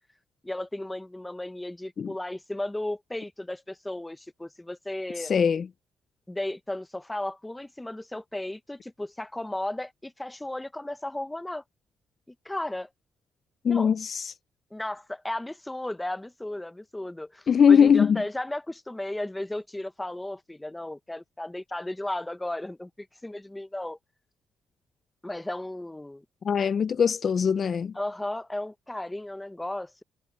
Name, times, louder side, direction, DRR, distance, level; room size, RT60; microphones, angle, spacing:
voice 1, 0.4-5.3 6.3-11.6 12.3-12.9 13.7-13.9 14.7-24.0 25.2-26.2 27.9-30.0, left 1 dB, 10° left, 1.0 m, -35 dB
voice 2, 5.2-5.7 13.6-14.3 17.5-18.2 26.4-27.9, left 7 dB, 50° left, 0.6 m, -21 dB
cardioid pair, 90°, 0 cm